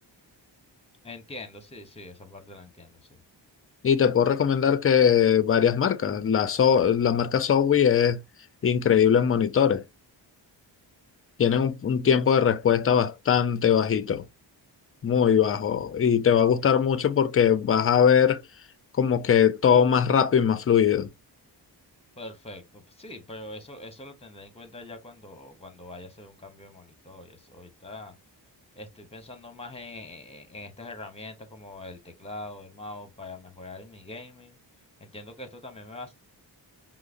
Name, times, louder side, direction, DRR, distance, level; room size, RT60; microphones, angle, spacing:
voice 1, 1.0-3.0 22.2-28.2 28.8-34.6 35.0-36.1, left 2 dB, 15° left, 0.8 m, -43 dB
voice 2, 3.8-8.2 8.6-9.8 11.4-14.2 15.0-18.4 19.0-21.1, left 8 dB, 35° left, 0.4 m, -21 dB
4.7 x 2.0 x 2.4 m
wide cardioid pair, 90°, 44 cm